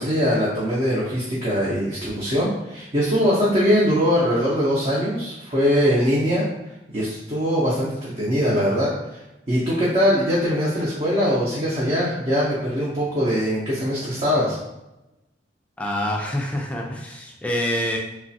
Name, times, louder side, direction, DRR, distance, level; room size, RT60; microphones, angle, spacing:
voice 1, 0.0-6.5 6.9-14.6, equal, 35° right, -7 dB, 0.6 m, -22 dB
voice 2, 15.8-18.0, left 1 dB, 10° left, -1 dB, 0.3 m, -26 dB
3.1 x 2.3 x 2.6 m, 0.93 s
head